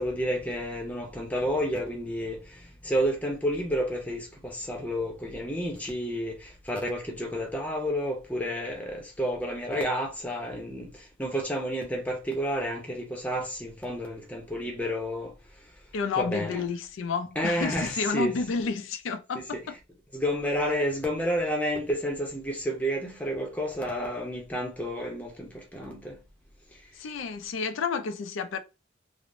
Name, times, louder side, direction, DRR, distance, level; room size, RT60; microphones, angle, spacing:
voice 1, 0.0-15.3 16.2-16.6 17.4-18.3 20.1-26.2, equal, 10° left, 0.6 m, -30 dB
voice 2, 15.9-19.8 27.0-28.6, left 5 dB, 80° left, 0.4 m, -30 dB
3.2 x 2.0 x 2.5 m
head